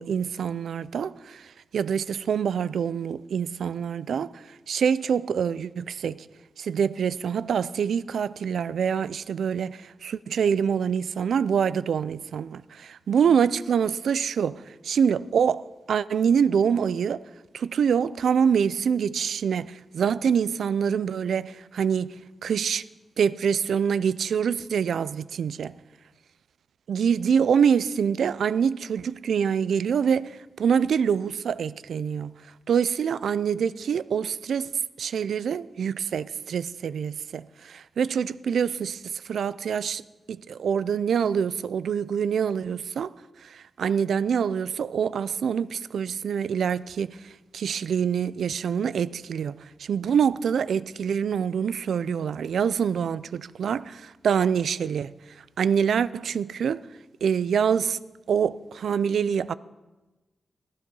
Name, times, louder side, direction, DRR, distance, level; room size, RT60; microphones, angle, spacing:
voice 1, 0.0-1.4 1.7-4.3 4.7-6.3 6.6-14.6 14.8-15.6 15.9-17.2 17.5-22.1 22.4-22.8 23.2-25.7 26.9-30.3 30.6-32.3 32.7-34.7 35.0-40.0 40.3-43.1 43.8-47.2 47.5-55.2 55.6-56.8 57.2-58.0 58.3-59.5, right 7 dB, 85° right, 0.4 m, -25 dB
16.0 x 14.0 x 5.5 m
wide cardioid pair, 110°, 0 cm